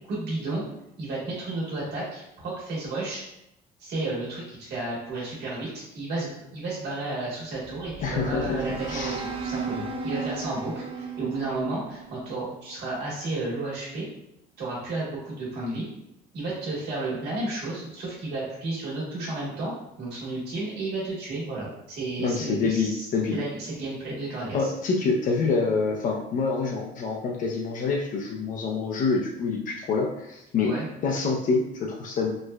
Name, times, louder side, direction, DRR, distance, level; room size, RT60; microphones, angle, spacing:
voice 1, 0.1-0.6 1.0-3.2 3.8-14.1 14.6-15.9 16.3-19.7 20.0-23.0 23.3-24.7 30.6-30.8, right 2 dB, 80° right, -6 dB, 1.3 m, -32 dB
sound 1, 7.6-12.8, right 4 dB, 35° right, 0.4 m, -35 dB
voice 2, 8.0-8.6 8.9-9.2 22.2-23.4 24.5-30.7 31.0-32.3, left 4 dB, 50° left, 0 dB, 0.5 m, -26 dB
4.4 x 2.2 x 2.3 m, 0.83 s
cardioid pair, 110°, 17 cm